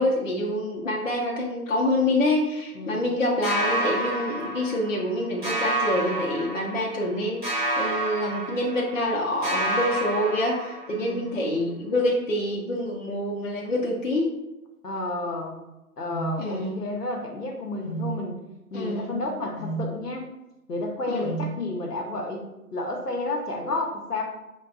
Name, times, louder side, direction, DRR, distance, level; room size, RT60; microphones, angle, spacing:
voice 1, 0.0-14.3 16.4-16.8 18.7-19.2 21.1-21.4, left 1 dB, 55° left, -3 dB, 0.6 m, -26 dB
voice 2, 2.7-3.1 10.9-11.3 14.8-15.6 16.0-18.4 18.7-20.3 20.7-22.4 22.7-24.2, left 2 dB, 80° left, 2 dB, 0.9 m, -31 dB
sound 1, 3.4-5.1 5.4-7.1 7.4-9.1 9.4-11.1, right 1 dB, 30° right, 0.9 m, -29 dB
sound 2, 16.1-16.4 17.8-18.1 19.6-19.9 21.2-21.5, right 4 dB, 35° left, 1.0 m, -31 dB
4.7 x 2.3 x 2.3 m, 0.96 s
figure-of-eight pair, 170°, 46 cm